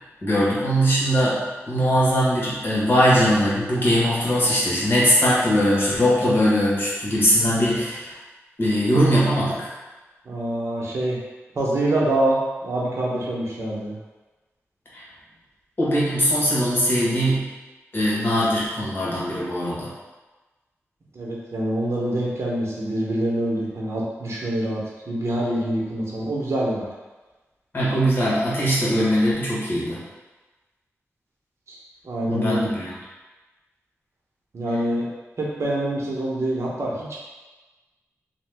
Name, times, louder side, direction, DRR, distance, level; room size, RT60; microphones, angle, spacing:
voice 1, 0.2-1.4 1.7-8.2 8.6-9.7 14.9-15.0 15.8-17.5 17.9-19.9 27.7-30.0 32.2-32.9, equal, 45° left, -7 dB, 1.3 m, -21 dB
voice 2, 10.2-11.2 11.6-14.0 21.1-26.8 31.7-31.8 32.0-32.7 34.5-35.1 35.4-37.2, right 1 dB, 65° right, -4 dB, 0.9 m, -25 dB
2.9 x 2.2 x 3.4 m, 1.2 s
cardioid pair, 60°, 5 cm